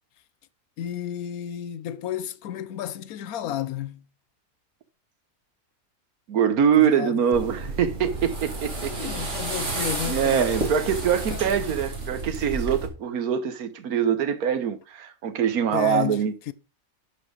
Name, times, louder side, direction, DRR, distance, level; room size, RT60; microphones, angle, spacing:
voice 1, 0.8-4.0 6.8-7.2 8.8-10.6 11.3-11.5 15.7-16.5, left 11 dB, 80° left, 1.1 m, -32 dB
voice 2, 6.3-8.9 10.1-16.3, right 8 dB, 80° right, 1.5 m, -23 dB
sound 1, 7.3-12.9, right 2 dB, 50° right, 2.3 m, -31 dB
10.5 x 4.3 x 4.8 m
omnidirectional pair, 1.5 m